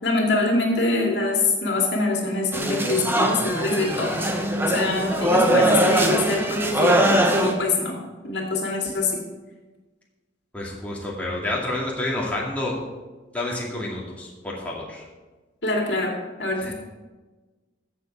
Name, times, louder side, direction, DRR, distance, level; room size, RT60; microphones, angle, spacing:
voice 1, 0.0-4.3 4.7-8.0 8.2-9.2 15.6-16.1 16.4-16.7, left 2 dB, 65° left, 0 dB, 2.3 m, -24 dB
sound 1, 2.5-7.5, right 1 dB, 10° right, 1.0 m, -21 dB
voice 2, 10.5-12.7 13.3-15.0 16.6-16.7, left 1 dB, 10° left, -5 dB, 2.3 m, -29 dB
15.0 x 7.2 x 4.7 m, 1.2 s
head